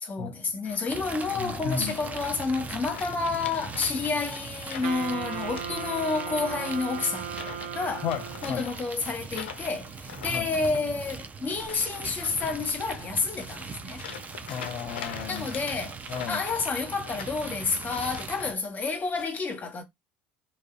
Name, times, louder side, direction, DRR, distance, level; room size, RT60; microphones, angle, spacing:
voice 1, 0.0-7.3 7.7-8.1 8.4-14.0 15.3-16.0 16.3-19.8, left 4 dB, 30° left, 1.0 m, -30 dB
sound 1, 0.6-1.2 1.8-2.5 2.8-6.3 6.5-6.9 7.3-7.7 8.0-18.5 18.8-19.3, left 8 dB, 85° left, 0.4 m, -44 dB
sound 2, 0.9-18.5, right 5 dB, 30° right, 0.5 m, -40 dB
voice 2, 1.4-1.9 8.0-8.6 10.3-10.5 14.5-15.5 16.1-16.4, left 7 dB, 50° left, 0.6 m, -34 dB
Wind instrument woodwind instrument, 4.8-8.7, right 7 dB, 85° right, 0.5 m, -36 dB
2.5 x 2.2 x 2.3 m
hypercardioid pair, 75°, 6 cm